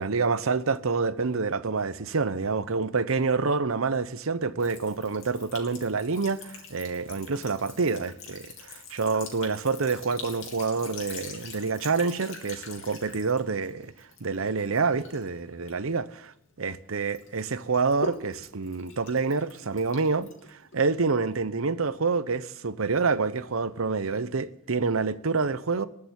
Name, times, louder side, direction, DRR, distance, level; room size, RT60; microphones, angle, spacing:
voice 1, 0.0-16.3 16.6-25.9, right 4 dB, 85° right, 0.8 m, -27 dB
Sink (filling or washing) / Trickle dribble, 4.6-16.7 17.1-20.9, left 4 dB, 70° left, 3.0 m, -44 dB
20.5 x 6.8 x 9.6 m
head